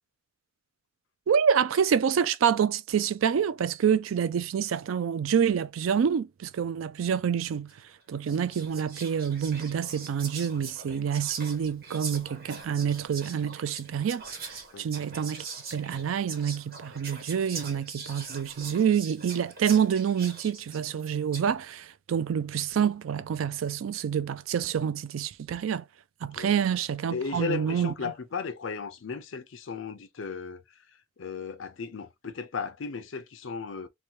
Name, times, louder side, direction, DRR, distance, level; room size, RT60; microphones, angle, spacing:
voice 1, 1.3-7.7 8.1-15.4 15.7-25.8 26.2-27.9, right 7 dB, 85° right, 0.4 m, -27 dB
Whispering, 7.7-7.9 8.3-21.5, right 5 dB, 50° right, 1.2 m, -42 dB
voice 2, 27.1-30.6 31.2-33.9, left 5 dB, 75° left, 0.5 m, -35 dB
3.0 x 2.2 x 2.6 m
head